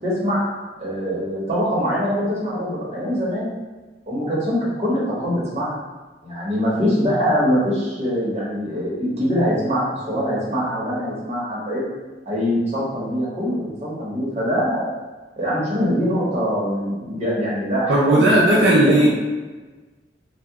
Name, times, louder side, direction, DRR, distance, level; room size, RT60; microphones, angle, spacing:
voice 1, 0.0-0.5 0.8-3.5 4.1-5.8 6.2-11.9 12.3-14.9 15.4-18.4 18.7-19.1, equal, 40° right, -7 dB, 1.0 m, -23 dB
voice 2, 17.9-19.1, right 1 dB, 70° right, -6 dB, 0.5 m, -15 dB
2.8 x 2.3 x 3.5 m, 1.3 s
head